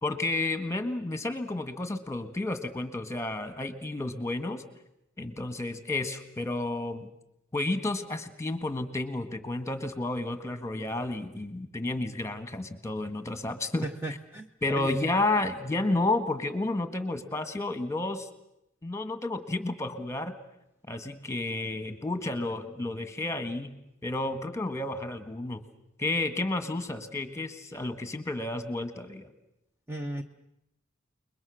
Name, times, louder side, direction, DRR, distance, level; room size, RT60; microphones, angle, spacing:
voice 1, 0.0-4.6 5.2-7.1 7.5-14.2 14.6-18.3 18.8-20.3 20.9-23.7 24.0-25.6 26.0-29.3, left 2 dB, 15° left, 9 dB, 1.6 m, -31 dB
voice 2, 14.0-14.9 29.9-30.2, right 1 dB, 10° right, 5 dB, 0.9 m, -36 dB
29.0 x 21.5 x 6.4 m, 0.82 s
head